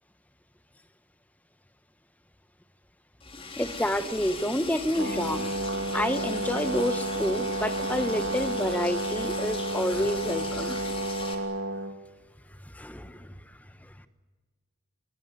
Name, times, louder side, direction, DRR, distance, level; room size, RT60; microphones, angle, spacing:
Liquid, 3.2-11.3, left 3 dB, 25° left, 3.7 m, -39 dB
voice 1, 3.6-5.5 5.9-10.9 12.7-13.3, equal, 5° left, 11 dB, 1.2 m, -29 dB
Brass instrument, 4.9-11.9, right 1 dB, 60° right, 2.6 m, -31 dB
26.0 x 21.0 x 9.9 m, 1.4 s
head